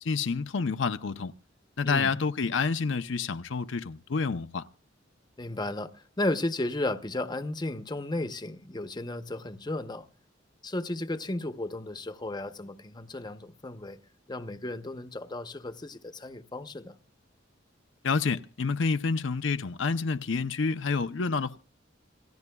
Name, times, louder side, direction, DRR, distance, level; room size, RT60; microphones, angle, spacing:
voice 1, 0.0-1.3 1.8-4.7 18.0-21.6, left 4 dB, 75° left, 0.6 m, -28 dB
voice 2, 5.4-10.1 10.6-14.0 14.3-17.0, left 2 dB, 20° left, 0.8 m, -34 dB
27.5 x 16.0 x 2.3 m
head